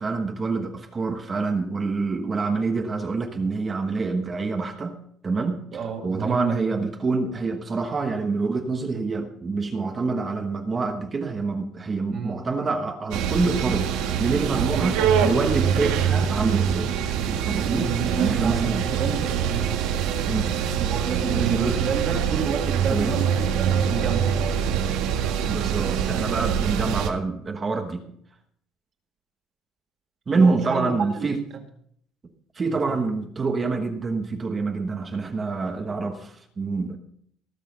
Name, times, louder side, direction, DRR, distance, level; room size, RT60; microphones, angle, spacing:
voice 1, 0.0-5.0 5.2-5.6 6.0-13.9 14.2-16.9 17.2-17.9 18.2-18.9 20.2-20.5 21.3-21.8 22.9-23.2 25.1-28.0 30.3-31.4 32.5-37.0, right 4 dB, 20° right, 5 dB, 1.2 m, -26 dB
voice 2, 5.7-6.6 12.1-12.4 14.5-15.5 17.6-19.7 20.8-24.8 30.3-31.3 32.9-33.0, right 5 dB, 40° right, 1 dB, 2.1 m, -30 dB
sound 1, 13.1-27.1, right 8 dB, 80° right, 1.8 m, -24 dB
19.0 x 6.6 x 6.4 m, 0.67 s
cardioid pair, 160°, 0 cm